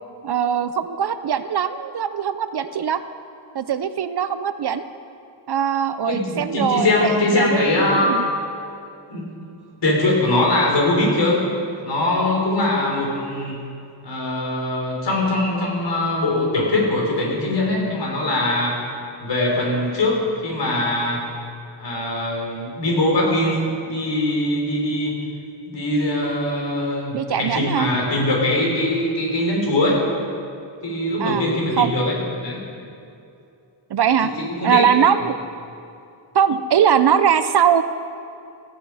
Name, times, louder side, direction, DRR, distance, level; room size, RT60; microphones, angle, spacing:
voice 1, 0.2-3.0 3.5-4.8 5.5-7.6 8.1-8.2 27.1-27.9 31.2-31.5 31.8-31.9 33.9-34.3 34.6-35.4 36.3-37.8, right 8 dB, 55° right, 11 dB, 0.6 m, -20 dB
voice 2, 6.1-8.1 9.1-9.3 9.8-11.4 11.8-13.6 14.0-18.7 19.2-21.2 21.8-25.2 25.7-30.0 30.8-32.6 34.2-34.8, left 1 dB, 60° left, -2 dB, 4.7 m, -21 dB
18.5 x 14.5 x 4.9 m, 2.6 s
wide cardioid pair, 155°, 49 cm